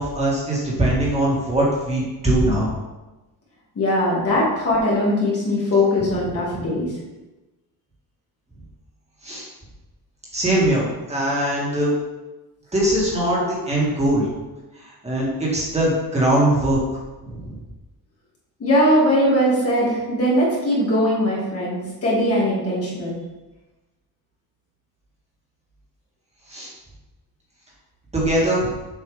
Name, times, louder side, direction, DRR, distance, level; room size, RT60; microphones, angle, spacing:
voice 1, 0.0-2.7 6.5-6.6 9.2-9.5 10.3-11.9 12.7-14.3 14.8-16.8 17.2-17.6 26.5-26.7 28.1-28.7, right 1 dB, 15° right, -5 dB, 2.1 m, -21 dB
voice 2, 3.8-6.9 18.6-23.2, left 1 dB, 40° left, -5 dB, 2.2 m, -20 dB
7.2 x 5.4 x 3.5 m, 1.1 s
wide cardioid pair, 165°, 37 cm